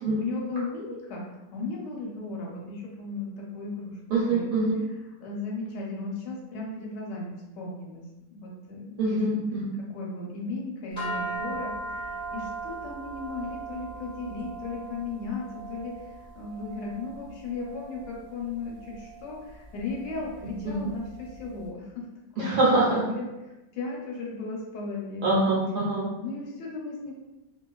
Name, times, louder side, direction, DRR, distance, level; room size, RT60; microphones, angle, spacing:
voice 1, 0.1-4.0 4.3-4.5 5.2-8.0 8.3-9.4 9.8-22.0 22.4-22.5 22.9-23.2 23.7-25.4 26.2-27.1, left 3 dB, 80° left, -2 dB, 1.3 m, -36 dB
voice 2, 4.1-4.8 9.0-9.6 20.6-20.8 22.4-23.0 25.2-26.1, right 2 dB, 75° right, -5 dB, 1.2 m, -24 dB
sound 1, 11.0-21.4, right 2 dB, 5° left, 0.6 m, -39 dB
2.9 x 2.4 x 2.3 m, 1.0 s
omnidirectional pair, 1.8 m